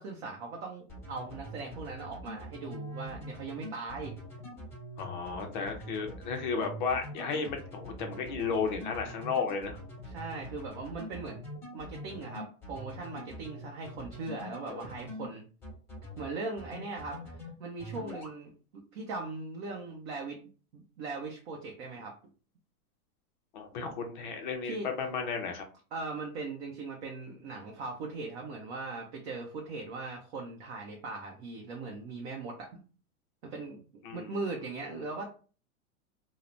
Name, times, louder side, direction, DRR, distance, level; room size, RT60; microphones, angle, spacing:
voice 1, 0.0-4.1 10.0-11.4 11.7-15.4 16.2-20.4 20.7-22.1 24.6-24.9 25.9-32.9 33.4-33.8 34.1-35.4, right 3 dB, 50° right, 0 dB, 0.6 m, -39 dB
sound 1, 0.9-15.2 15.6-16.3 16.6-17.5 17.8-18.3, equal, 5° left, 1.0 m, -44 dB
voice 2, 5.0-9.8 23.5-25.6 34.0-34.3, left 5 dB, 35° left, 4 dB, 0.4 m, -33 dB
3.2 x 2.0 x 2.5 m, 0.37 s
supercardioid pair, 160°, 44 cm